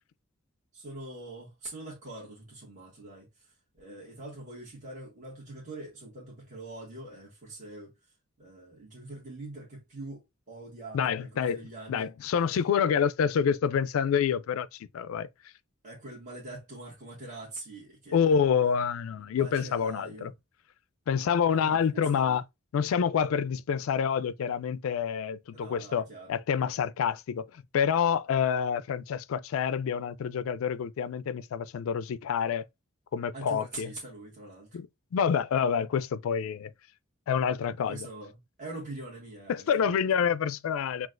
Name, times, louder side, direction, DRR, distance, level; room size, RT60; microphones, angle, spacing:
voice 1, 0.7-7.9 8.4-12.1 15.8-18.4 19.2-20.3 21.5-22.4 25.5-26.3 33.3-34.8 37.9-40.0, right 2 dB, 40° right, 1.4 m, -44 dB
voice 2, 10.9-15.3 18.1-20.3 21.1-22.4 22.7-32.6 33.1-33.9 34.7-34.9 35.1-36.7 37.3-38.1 39.5-41.1, left 7 dB, 85° left, 0.3 m, -27 dB
6.0 x 2.4 x 2.4 m
head